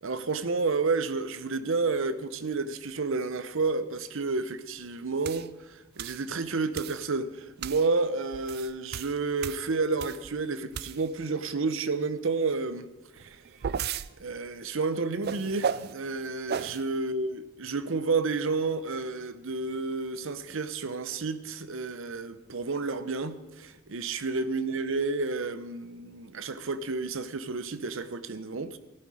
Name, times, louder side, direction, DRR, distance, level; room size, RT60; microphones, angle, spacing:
voice 1, 0.0-12.9 13.1-13.5 14.2-28.8, right 3 dB, 65° right, 0.8 m, -30 dB
sound 1, 5.2-5.5 6.0-6.2 6.7-7.1 7.6-7.9 8.3-10.3 10.7-11.2 13.2-14.1 15.2-15.9 16.5-16.8, right 7 dB, 50° right, 0.4 m, -34 dB
15.5 x 11.0 x 4.9 m
head